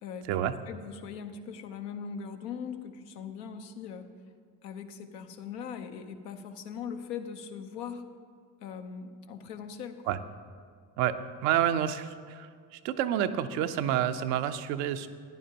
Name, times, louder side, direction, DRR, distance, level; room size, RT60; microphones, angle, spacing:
voice 1, 0.0-4.1 4.6-8.0 8.6-10.0, left 7 dB, 80° left, 6 dB, 0.8 m, -40 dB
voice 2, 11.4-15.1, right 11 dB, 75° right, 9 dB, 0.7 m, -29 dB
14.5 x 10.0 x 2.9 m, 2.1 s
hypercardioid pair, 55°, 48 cm